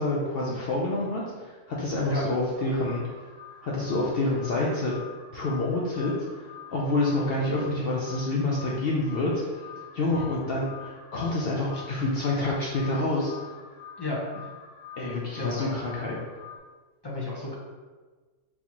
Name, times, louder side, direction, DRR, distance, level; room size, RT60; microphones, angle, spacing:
voice 1, 0.0-3.0 3.6-4.9 5.3-9.5 9.9-13.5 15.0-16.2, left 2 dB, 60° left, -4 dB, 0.7 m, -28 dB
Alarm, 2.5-16.6, left 7 dB, 10° right, 0.9 m, -46 dB
voice 2, 14.0-14.5 15.4-15.7 17.0-17.5, left 2 dB, 25° left, -5 dB, 0.6 m, -33 dB
4.0 x 2.7 x 2.9 m, 1.4 s
omnidirectional pair, 1.3 m